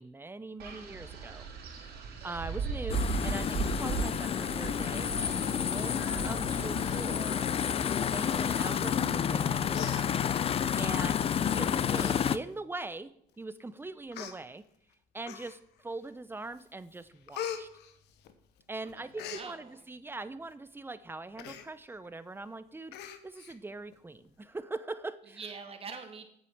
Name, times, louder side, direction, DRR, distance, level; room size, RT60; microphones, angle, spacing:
voice 1, 0.0-7.5 8.0-10.0 10.3-14.6 15.1-17.7 18.7-25.4, right 2 dB, 15° right, 14 dB, 0.7 m, -42 dB
Wind, 0.6-7.2, right 5 dB, 75° right, 3.7 m, -37 dB
sound 1, 2.9-12.4, left 8 dB, 35° left, 0.5 m, -30 dB
Human voice, 9.2-9.4 9.7-10.6 11.4-11.5 11.9-12.2 12.5-12.6 13.4-13.5 14.1-14.3 15.2-15.8 16.3-16.6 16.9-18.6 18.9-19.5 21.4-21.7 22.0-22.1 22.4-22.5 22.9-23.6 23.9-24.0, left 9 dB, 85° left, 1.1 m, -41 dB
voice 2, 18.8-19.8 25.4-26.3, right 5 dB, 35° right, 5 dB, 1.9 m, -45 dB
8.4 x 7.8 x 7.2 m, 0.70 s
cardioid pair, 110°, 17 cm